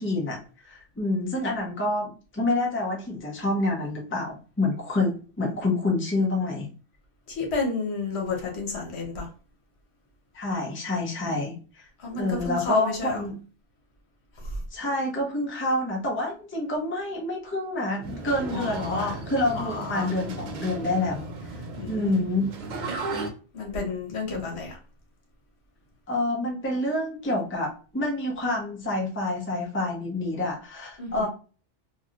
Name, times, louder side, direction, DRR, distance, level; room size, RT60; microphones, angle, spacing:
voice 1, 0.0-6.7 10.3-11.9 12.2-13.4 14.7-21.3 21.8-22.6 24.3-24.4 26.1-31.3, left 2 dB, 15° left, 0.7 m, -28 dB
voice 2, 7.3-9.3 12.0-13.2 14.4-14.6 18.5-19.1 19.5-20.1 21.7-22.2 23.5-24.8 31.0-31.3, left 3 dB, 70° left, 1.2 m, -31 dB
sound 1, 18.0-23.3, right 3 dB, 50° right, 0.6 m, -35 dB
3.1 x 2.7 x 2.4 m
omnidirectional pair, 1.2 m